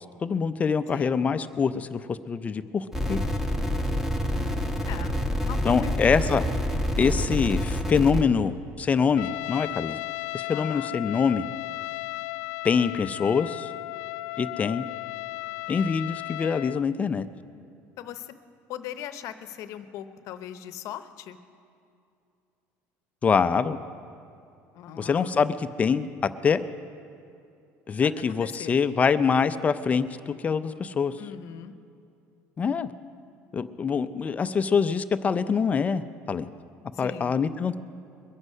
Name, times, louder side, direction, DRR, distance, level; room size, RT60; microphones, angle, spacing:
voice 1, 0.2-3.2 5.6-6.4 7.0-10.0 10.3-11.5 12.6-13.7 14.4-14.9 15.7-17.3 23.2-23.8 25.0-26.1 26.4-26.6 27.9-31.1 32.6-32.9 33.5-36.0 36.3-36.5 37.0-37.8, left 6 dB, 25° left, 11 dB, 0.4 m, -25 dB
voice 2, 0.9-1.2 4.9-5.2 5.4-6.1 10.5-10.9 18.0-18.3 18.7-21.4 24.7-25.4 28.3-28.8 31.2-31.7 36.9-37.3, left 10 dB, 60° left, 10 dB, 0.8 m, -39 dB
sound 1, 2.9-8.2, equal, 5° right, 1.2 m, -27 dB
Trumpet, 9.2-16.8, left 20 dB, 90° left, 0.3 m, -35 dB
22.5 x 8.0 x 5.5 m, 2.5 s
cardioid pair, 135°, 6 cm